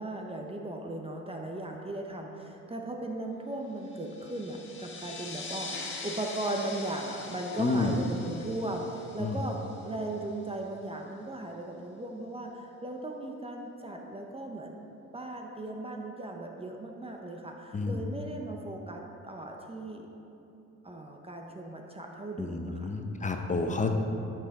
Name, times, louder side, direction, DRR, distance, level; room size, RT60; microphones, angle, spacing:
voice 1, 0.0-14.8 15.1-20.1 20.8-22.9, right 1 dB, 20° right, 1 dB, 0.8 m, -37 dB
sound 1, 3.9-10.1, left 3 dB, 40° left, 1.3 m, -43 dB
voice 2, 7.6-8.0 9.2-9.4 17.7-18.1 22.4-23.9, left 3 dB, 25° left, 4 dB, 0.8 m, -30 dB
13.0 x 5.9 x 3.6 m, 2.8 s
cardioid pair, 90°, 30 cm